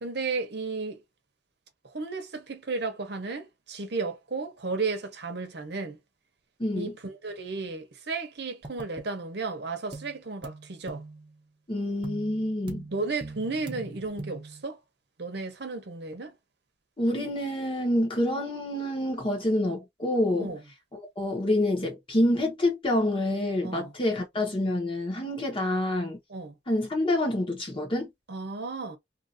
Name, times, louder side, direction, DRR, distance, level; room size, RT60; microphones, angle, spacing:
voice 1, 0.0-1.0 1.8-6.0 6.7-11.0 12.9-14.8 15.2-16.3 20.4-20.6 23.6-23.9 26.3-26.6 28.3-29.0, right 3 dB, 65° right, 0.8 m, -34 dB
voice 2, 6.6-6.9 11.7-12.8 17.0-20.5 21.2-26.2 26.7-28.1, left 1 dB, 30° left, 1.2 m, -27 dB
sound 1, 8.6-9.1 9.9-10.2 10.4-11.4 12.0-14.6, right 2 dB, 30° right, 0.9 m, -41 dB
2.8 x 2.6 x 2.6 m
head